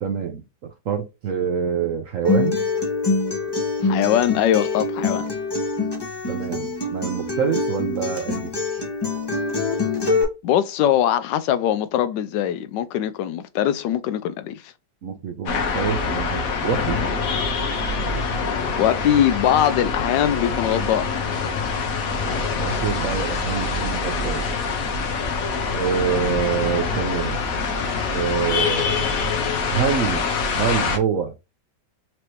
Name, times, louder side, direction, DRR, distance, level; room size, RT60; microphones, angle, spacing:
voice 1, 0.0-2.6 6.3-8.8 15.0-17.0 22.6-24.5 25.7-27.4 28.1-29.0 29.7-30.3 30.6-31.3, right 7 dB, 70° right, 0.8 m, -26 dB
Acoustic guitar, 2.2-10.2, left 3 dB, 20° left, 0.8 m, -24 dB
voice 2, 3.8-5.3 10.4-14.7 18.8-21.2, left 10 dB, 85° left, 1.2 m, -21 dB
sound 1, 15.5-31.0, left 4 dB, 60° left, 1.1 m, -25 dB
4.6 x 3.0 x 3.1 m
omnidirectional pair, 1.9 m